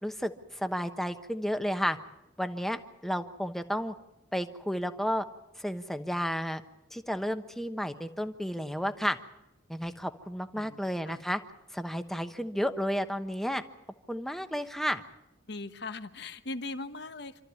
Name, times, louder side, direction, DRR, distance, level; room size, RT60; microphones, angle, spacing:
voice 1, 0.0-2.0 2.4-3.9 4.3-5.2 5.6-6.6 6.9-9.2 9.7-11.4 11.7-13.6 14.1-15.0, equal, ahead, 8 dB, 1.0 m, -32 dB
voice 2, 10.6-11.2 15.5-17.4, left 2 dB, 60° left, 10 dB, 1.2 m, -40 dB
27.5 x 13.5 x 9.6 m, 0.94 s
head